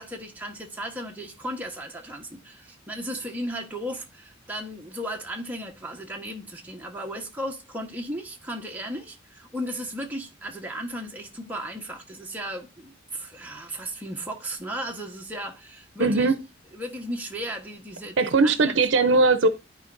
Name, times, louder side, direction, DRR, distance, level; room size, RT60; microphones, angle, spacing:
voice 1, 0.0-16.3 16.7-18.8, equal, 10° right, 1.1 m, -35 dB
voice 2, 16.0-16.4 18.2-19.5, right 3 dB, 65° right, 0.6 m, -19 dB
12.5 x 4.4 x 2.6 m
head